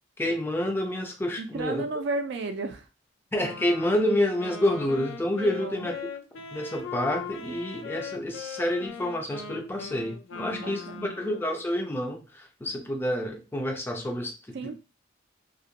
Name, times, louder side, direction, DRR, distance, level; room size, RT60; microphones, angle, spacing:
voice 1, 0.2-1.8 3.3-5.9 6.5-14.8, left 1 dB, 10° left, 0.4 m, -28 dB
voice 2, 1.4-2.8 5.4-5.9 10.3-11.1 14.5-14.8, right 3 dB, 60° right, 0.3 m, -34 dB
Wind instrument woodwind instrument, 3.4-11.6, left 6 dB, 85° left, 0.5 m, -40 dB
2.3 x 2.1 x 2.8 m
head